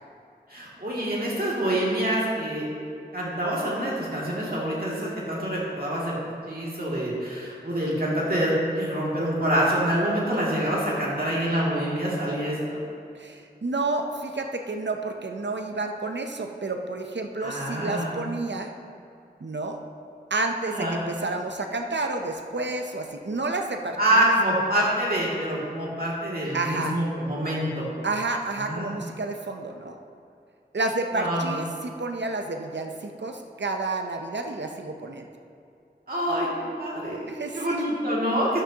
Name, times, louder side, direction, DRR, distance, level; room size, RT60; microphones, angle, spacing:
voice 1, 0.5-2.6 3.1-12.8 17.4-18.1 20.7-21.0 24.0-27.9 28.6-28.9 31.1-31.5 36.1-36.5 36.8-38.6, right 1 dB, 55° right, -6 dB, 2.4 m, -26 dB
voice 2, 13.1-18.7 19.4-19.8 20.3-24.2 26.5-27.0 28.0-30.0 30.7-35.3 37.3-37.8, right 2 dB, 80° right, 4 dB, 0.7 m, -30 dB
11.5 x 8.4 x 2.9 m, 2.5 s
wide cardioid pair, 40°, 18 cm